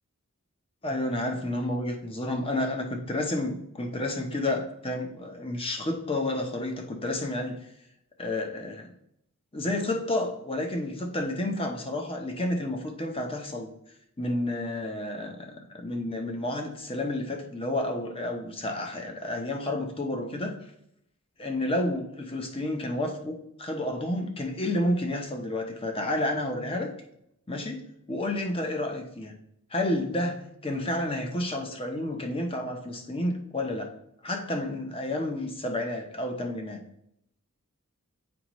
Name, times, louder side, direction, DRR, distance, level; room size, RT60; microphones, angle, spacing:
voice 1, 0.8-7.6 8.2-8.9 9.5-13.7 14.2-20.6 21.4-26.9 27.5-27.8 28.1-29.3 29.7-33.9 34.2-36.8, left 1 dB, 25° left, 3 dB, 0.8 m, -30 dB
7.8 x 5.0 x 3.0 m, 0.76 s
head